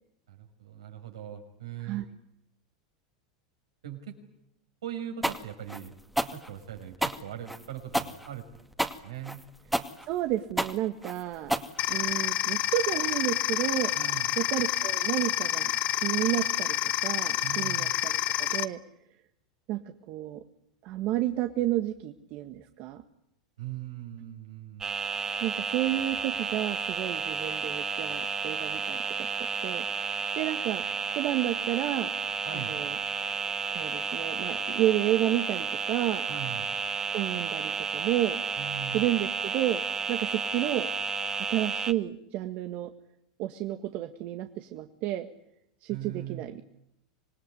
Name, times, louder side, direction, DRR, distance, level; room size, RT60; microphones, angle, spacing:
voice 1, 0.3-2.0 3.8-4.1 4.8-5.9 6.3-8.4 9.0-9.4 13.9-14.3 17.4-17.9 23.6-24.9 32.4-32.8 36.3-36.7 38.6-39.1 45.9-46.4, right 10 dB, 85° right, 5 dB, 5.8 m, -40 dB
sound 1, 5.2-12.3, right 1 dB, 5° right, 2.2 m, -31 dB
voice 2, 10.0-11.6 11.9-13.9 14.4-15.7 16.0-16.8 17.0-18.8 19.7-19.8 20.1-20.4 20.8-23.0 25.4-29.3 29.6-29.9 30.4-30.8 31.2-32.1 32.5-33.0 33.7-36.2 37.1-38.4 38.9-39.8 40.1-40.9 41.5-42.9 43.4-45.3 45.8-46.6, right 13 dB, 55° right, 6 dB, 1.8 m, -31 dB
sound 2, 11.8-18.6, left 15 dB, 50° left, 1.3 m, -28 dB
sound 3, 24.8-41.9, right 5 dB, 20° right, 1.5 m, -32 dB
26.0 x 19.5 x 10.0 m, 0.80 s
hypercardioid pair, 95°, 3 cm